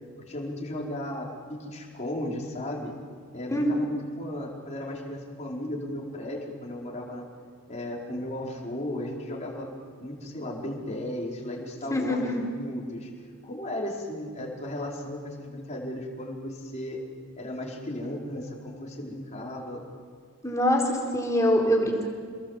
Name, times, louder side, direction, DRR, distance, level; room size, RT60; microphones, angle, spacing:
voice 1, 0.2-2.9 3.3-7.3 7.7-9.7 10.0-13.1 13.4-17.0 17.4-19.8, left 1 dB, 35° left, -2 dB, 4.8 m, -35 dB
voice 2, 3.5-3.9 11.9-12.4 20.4-22.1, equal, 15° left, 0 dB, 4.6 m, -24 dB
28.5 x 22.0 x 7.6 m, 2.1 s
head